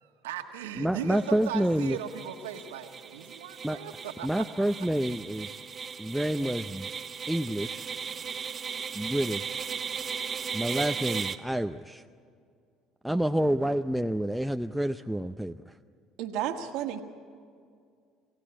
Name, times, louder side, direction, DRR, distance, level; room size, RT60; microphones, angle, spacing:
voice 1, 0.0-4.4 13.1-13.4 16.4-16.6, right 9 dB, 85° right, 5 dB, 1.5 m, -38 dB
voice 2, 0.8-2.0 3.6-3.8 4.2-5.6 6.0-6.9 7.3-7.9 8.9-9.7 10.5-12.0 13.0-15.7, right 1 dB, 5° right, 6 dB, 0.6 m, -28 dB
sound 1, 1.1-11.4, right 6 dB, 40° right, 1.2 m, -37 dB
voice 3, 16.2-17.0, right 10 dB, 70° right, 6 dB, 1.6 m, -32 dB
26.5 x 16.5 x 8.6 m, 2.3 s
hypercardioid pair, 65°, 0 cm